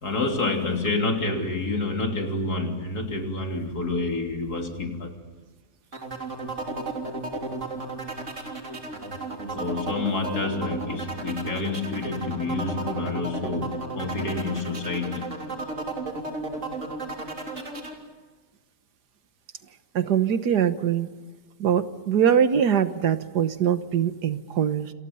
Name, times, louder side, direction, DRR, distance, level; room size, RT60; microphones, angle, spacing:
voice 1, 0.0-5.2 9.5-15.3, left 3 dB, 75° left, 3 dB, 3.8 m, -28 dB
sound 1, 5.9-17.9, right 2 dB, 50° right, 3.7 m, -34 dB
voice 2, 20.0-21.1 21.6-24.9, right 8 dB, 90° right, 11 dB, 1.8 m, -23 dB
29.0 x 27.5 x 5.6 m, 1.4 s
omnidirectional pair, 1.7 m